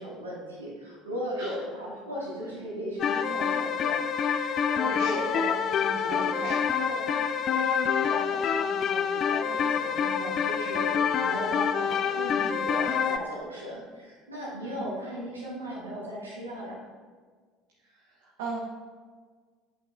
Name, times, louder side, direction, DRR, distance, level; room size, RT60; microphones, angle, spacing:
voice 1, 0.0-7.1 7.5-16.8, equal, 85° right, -5 dB, 1.4 m, -37 dB
sound 1, 3.0-13.2, left 7 dB, 45° left, 0.3 m, -27 dB
voice 2, 4.8-5.1 5.8-6.6 14.6-14.7 17.8-18.6, right 3 dB, 65° right, -3 dB, 0.8 m, -38 dB
8.8 x 5.3 x 2.2 m, 1.6 s
figure-of-eight pair, 65°, 0 cm